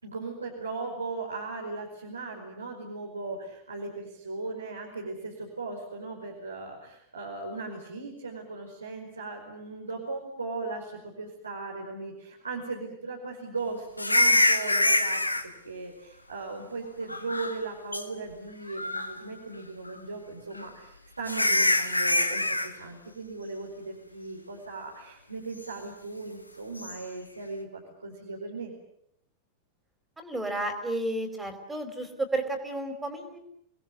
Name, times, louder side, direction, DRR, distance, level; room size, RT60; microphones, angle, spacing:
voice 1, 0.0-15.2 15.6-28.7, right 3 dB, 80° right, -2 dB, 5.0 m, -38 dB
sound 1, 14.0-15.4 17.1-17.6 17.9-18.0 18.7-19.2 20.6-20.7 21.3-22.7 26.8-27.0, left 1 dB, 85° left, 1.8 m, -24 dB
voice 2, 30.2-33.4, right 2 dB, 10° right, 7 dB, 4.6 m, -32 dB
29.5 x 20.5 x 8.5 m, 0.73 s
figure-of-eight pair, 90°, 0 cm